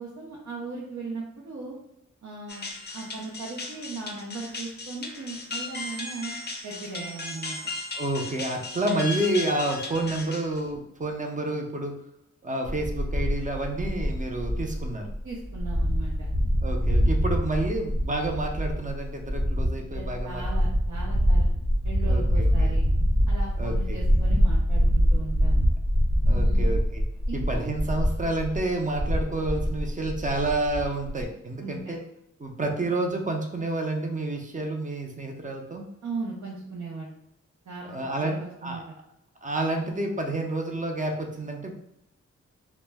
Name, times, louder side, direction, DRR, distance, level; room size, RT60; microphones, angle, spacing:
voice 1, 0.0-1.8 2.2-2.7 2.9-6.3 6.6-7.6 15.2-16.3 19.8-21.5 21.8-22.9 23.3-25.7 26.3-26.7 27.3-27.6 31.6-32.0 36.0-37.1 37.7-39.0, right 3 dB, 75° right, -5 dB, 0.6 m, -38 dB
sound 1, 2.5-10.8, left 3 dB, 35° left, 0.5 m, -36 dB
voice 2, 8.0-11.9 12.4-15.1 16.6-20.4 22.1-22.8 23.6-24.0 26.3-27.1 27.3-32.0 32.4-35.8 37.9-38.8 39.4-41.7, right 2 dB, 25° right, 3 dB, 0.5 m, -29 dB
sound 2, 12.7-31.2, equal, 90° right, 1.0 m, -24 dB
2.1 x 2.1 x 3.3 m, 0.80 s
cardioid pair, 55°, 30 cm